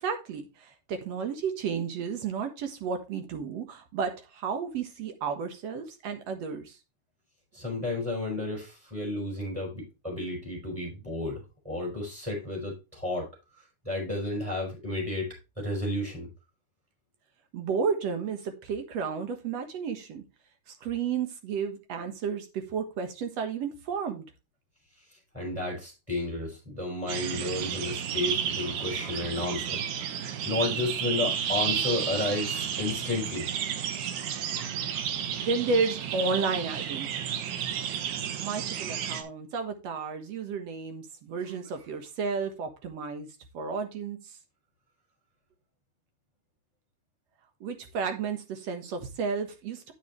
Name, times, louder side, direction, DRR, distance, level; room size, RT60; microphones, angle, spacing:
voice 1, 0.0-6.8 17.5-20.2 20.8-24.2 35.4-37.2 38.4-43.3 43.5-44.2 47.6-49.9, right 5 dB, 60° right, 6 dB, 2.4 m, -32 dB
voice 2, 7.5-13.3 13.8-15.3 15.6-16.3 25.3-33.5, left 2 dB, 10° right, -2 dB, 5.8 m, -32 dB
sound 1, 27.1-39.2, right 8 dB, 80° right, 2.5 m, -32 dB
9.0 x 8.7 x 3.2 m, 0.27 s
omnidirectional pair, 3.5 m